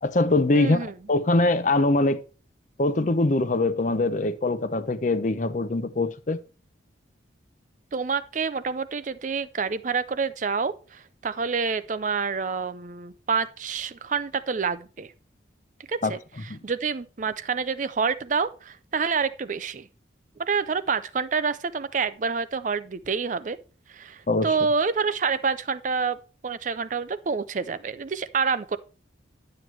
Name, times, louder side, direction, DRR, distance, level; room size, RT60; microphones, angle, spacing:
voice 1, 0.0-2.2 2.8-6.4 16.0-16.2 16.5-16.6 24.3-24.5, left 2 dB, 40° left, 0.6 m, -23 dB
voice 2, 0.5-0.9 7.9-15.1 15.9-16.2 16.6-19.9 20.4-23.6 23.9-28.8, right 5 dB, 40° right, 0.4 m, -27 dB
10.5 x 7.8 x 3.2 m
head